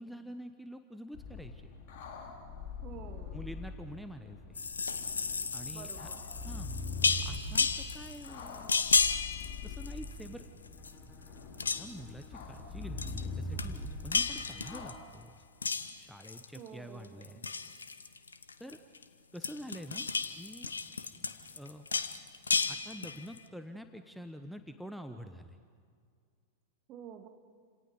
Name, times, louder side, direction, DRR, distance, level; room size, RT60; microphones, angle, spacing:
voice 1, 0.0-1.7 3.3-4.6 5.5-6.1 6.4-6.7 7.1-8.7 9.6-10.5 11.6-15.3 16.0-17.4 18.6-18.8 19.3-20.1 20.4-20.7 21.5-21.9 22.7-25.6, equal, ahead, 8 dB, 1.0 m, -46 dB
sound 1, 1.1-14.9, left 2 dB, 45° left, 3.7 m, -43 dB
voice 2, 2.8-3.5 5.7-6.3 16.5-17.5 26.9-27.3, right 8 dB, 35° right, 5 dB, 2.3 m, -49 dB
sound 2, 4.6-10.4 10.7-11.3 11.5-12.1 13.0-13.3 13.6-15.1 15.6-16.7 17.0-19.0 19.4-23.4, left 5 dB, 75° left, 1.0 m, -33 dB
Bowed string instrument, 10.7-15.0, left 1 dB, 15° left, 3.6 m, -59 dB
29.0 x 27.0 x 5.4 m, 2.2 s
figure-of-eight pair, 90°, 0 cm